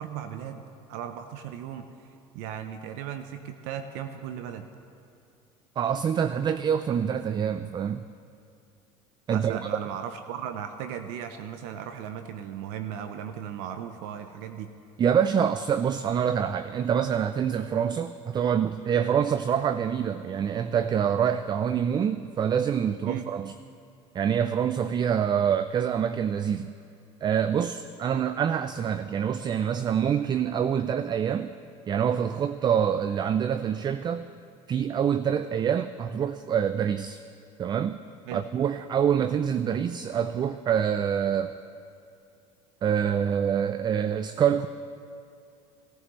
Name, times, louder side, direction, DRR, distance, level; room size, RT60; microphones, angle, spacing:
voice 1, 0.0-4.7 9.3-14.7 23.0-23.3 38.3-38.4, right 9 dB, 75° right, 8 dB, 0.7 m, -37 dB
voice 2, 5.8-8.0 9.3-9.7 15.0-23.5 24.1-26.7 27.2-31.5 31.9-34.3 34.7-37.2 37.6-38.0 38.3-41.6 42.8-44.7, right 8 dB, 30° right, 12 dB, 0.4 m, -26 dB
17.0 x 14.0 x 3.1 m, 2.6 s
supercardioid pair, 90°, 15 cm